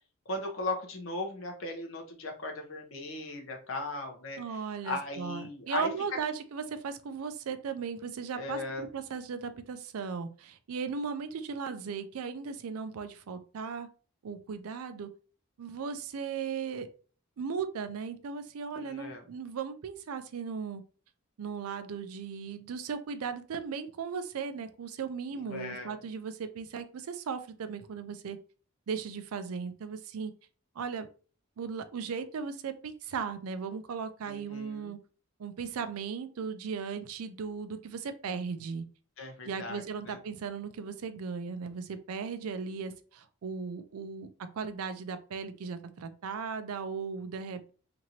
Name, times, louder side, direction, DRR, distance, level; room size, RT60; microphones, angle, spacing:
voice 1, 0.3-4.4 4.8-5.9 8.3-8.8 18.8-19.2 25.4-26.0 34.2-34.9 39.2-40.2, left 2 dB, 60° left, 3 dB, 0.7 m, -37 dB
voice 2, 4.4-13.9 14.2-15.1 15.6-16.9 17.4-20.8 21.4-28.4 28.9-30.3 30.8-31.1 31.6-35.0 35.4-38.9 39.4-44.3 44.5-47.7, right 6 dB, 80° right, 11 dB, 0.4 m, -37 dB
2.9 x 2.6 x 2.8 m, 0.38 s
head